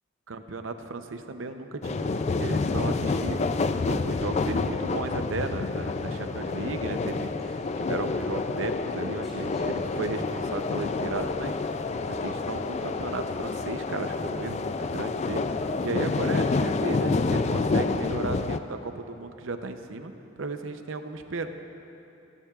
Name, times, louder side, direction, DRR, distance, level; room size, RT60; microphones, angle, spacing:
voice 1, 0.3-3.4 3.9-11.6 12.1-15.5 15.8-21.5, right 3 dB, 80° right, 7 dB, 0.7 m, -35 dB
sound 1, 1.8-18.6, left 3 dB, 35° left, 0.3 m, -28 dB
sound 2, 7.4-8.4 9.0-10.2 11.3-11.4, equal, ahead, 3.1 m, -53 dB
28.5 x 10.5 x 2.4 m, 2.9 s
head